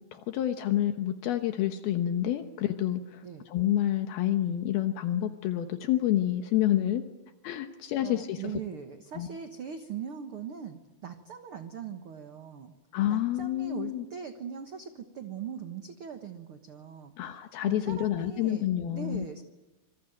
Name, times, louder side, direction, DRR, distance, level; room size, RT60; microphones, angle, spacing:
voice 1, 0.1-7.0 7.4-8.4 9.2-9.3 12.9-14.0 17.2-19.3, left 12 dB, 75° left, 7 dB, 3.0 m, -28 dB
voice 2, 8.0-12.7 13.1-17.4 17.6-19.4, right 7 dB, 60° right, 7 dB, 1.4 m, -40 dB
26.5 x 23.5 x 9.2 m, 1.1 s
omnidirectional pair, 4.5 m